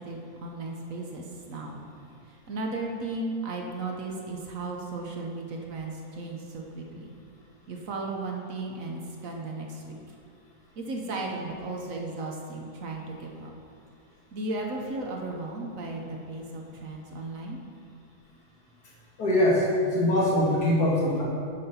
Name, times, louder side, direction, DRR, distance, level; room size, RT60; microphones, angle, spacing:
voice 1, 0.0-1.9 2.3-7.1 7.7-10.0 10.8-13.5 14.3-17.6, right 2 dB, 55° right, 0 dB, 1.0 m, -35 dB
voice 2, 19.2-21.2, left 1 dB, 50° left, -5 dB, 2.3 m, -23 dB
10.5 x 4.2 x 5.6 m, 2.4 s
omnidirectional pair, 2.1 m